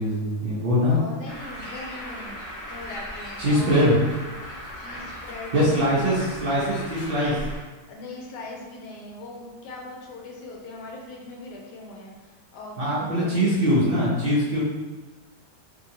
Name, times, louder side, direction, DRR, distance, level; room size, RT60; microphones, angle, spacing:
voice 1, 0.0-1.0 3.4-3.9 5.5-7.3 12.8-14.6, equal, 80° right, -8 dB, 0.5 m, -22 dB
voice 2, 0.9-2.4 2.7-4.2 4.7-6.1 7.9-14.0, left 2 dB, 75° left, -1 dB, 1.1 m, -40 dB
Bird, 1.3-7.6, equal, 25° left, 0.4 m, -38 dB
2.8 x 2.7 x 2.6 m, 1.2 s
omnidirectional pair, 1.9 m